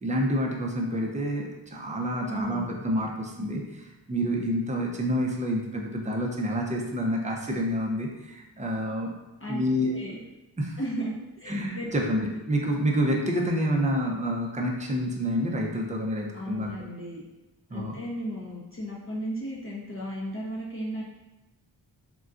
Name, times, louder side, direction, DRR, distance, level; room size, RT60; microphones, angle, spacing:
voice 1, 0.0-9.1 9.5-9.9 10.6-10.8 11.5-16.7 17.7-18.0, equal, 15° right, -1 dB, 0.5 m, -28 dB
voice 2, 2.2-2.7 9.4-9.6 9.9-10.2 10.8-11.9 16.3-17.2 17.7-21.0, equal, 30° left, -6 dB, 0.6 m, -35 dB
3.7 x 2.2 x 2.4 m, 1.1 s
wide cardioid pair, 80°, 45 cm